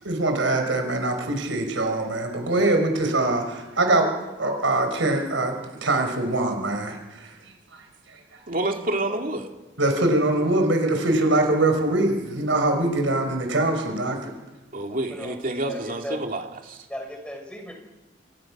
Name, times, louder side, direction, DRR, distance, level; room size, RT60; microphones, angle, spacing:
voice 1, 0.0-5.6 5.8-7.4 7.7-7.8 8.1-8.2 9.8-14.3, right 2 dB, 80° right, 5 dB, 5.1 m, -23 dB
voice 2, 8.5-9.5 14.7-16.9, right 1 dB, 45° right, 3 dB, 2.8 m, -28 dB
voice 3, 15.7-16.2 16.9-17.7, equal, 5° left, 2 dB, 6.1 m, -36 dB
27.5 x 27.5 x 6.3 m, 1.1 s
head